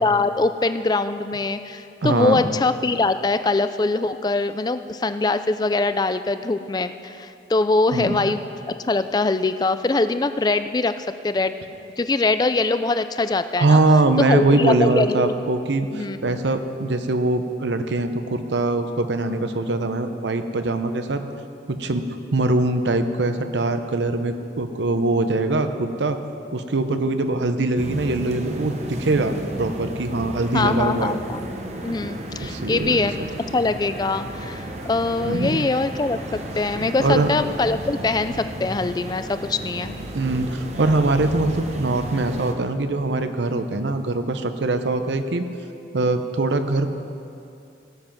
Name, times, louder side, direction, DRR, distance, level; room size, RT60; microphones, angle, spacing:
voice 1, 0.0-8.4 8.9-11.6 12.0-13.8 14.2-15.3 15.9-16.4 30.5-31.5 31.8-33.2 33.5-40.0, left 3 dB, 20° left, 11 dB, 0.3 m, -23 dB
voice 2, 2.0-2.5 7.9-8.3 13.6-21.2 21.7-22.1 22.3-26.2 26.5-31.2 32.4-33.3 35.2-35.7 37.0-37.3 40.1-45.5 45.9-46.9, right 2 dB, 75° right, 8 dB, 0.7 m, -22 dB
sound 1, 27.8-42.5, right 1 dB, 35° right, 0.9 m, -33 dB
16.5 x 7.7 x 5.9 m, 2.7 s
head